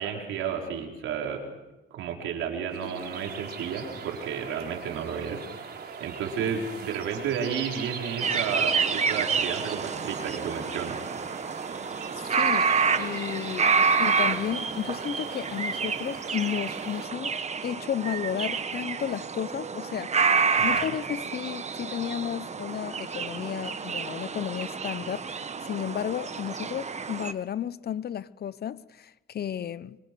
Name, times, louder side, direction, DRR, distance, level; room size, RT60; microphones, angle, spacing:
voice 1, 0.0-1.4 1.9-11.0 20.6-20.8, right 7 dB, 85° right, 4.7 m, -32 dB
sound 1, 2.7-17.1, right 6 dB, 55° right, 4.3 m, -40 dB
sound 2, 8.2-27.3, right 5 dB, 35° right, 1.4 m, -28 dB
voice 2, 12.3-20.1 20.6-30.0, left 9 dB, 55° left, 0.9 m, -33 dB
25.5 x 25.5 x 6.3 m
cardioid pair, 90°, 20 cm